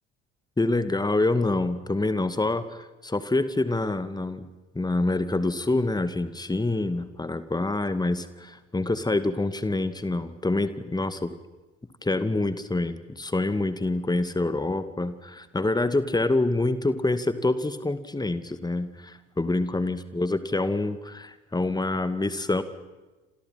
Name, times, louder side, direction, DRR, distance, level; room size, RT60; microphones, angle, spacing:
voice 1, 0.6-4.5 4.7-11.3 12.0-22.6, left 2 dB, 10° left, 12 dB, 2.2 m, -26 dB
28.5 x 27.5 x 5.8 m, 1.2 s
figure-of-eight pair, 55°, 35 cm